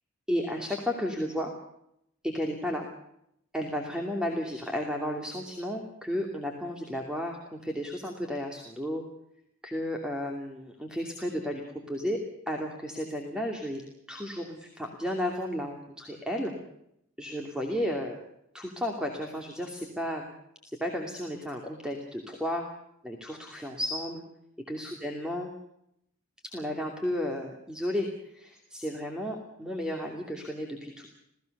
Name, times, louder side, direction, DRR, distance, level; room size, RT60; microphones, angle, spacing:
voice 1, 0.3-1.5 2.2-2.9 3.5-9.0 9.6-13.8 14.1-16.5 17.2-18.2 18.5-20.3 20.8-22.6 23.0-24.2 24.7-25.5 26.4-31.1, equal, 5° right, 2 dB, 2.7 m, -33 dB
28.0 x 17.5 x 6.7 m, 0.78 s
head